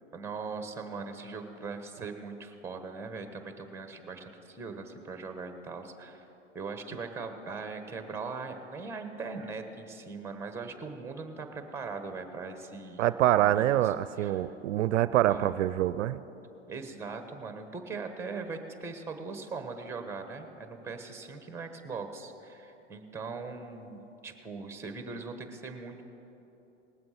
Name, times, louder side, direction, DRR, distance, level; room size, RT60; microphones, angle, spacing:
voice 1, 0.1-6.3 6.5-13.0 13.4-14.5 15.3-15.6 16.7-26.0, right 4 dB, 5° right, 7 dB, 1.1 m, -40 dB
voice 2, 13.0-16.2, right 13 dB, 80° right, 15 dB, 0.5 m, -25 dB
19.0 x 7.7 x 5.8 m, 3.0 s
hypercardioid pair, 120°, 37 cm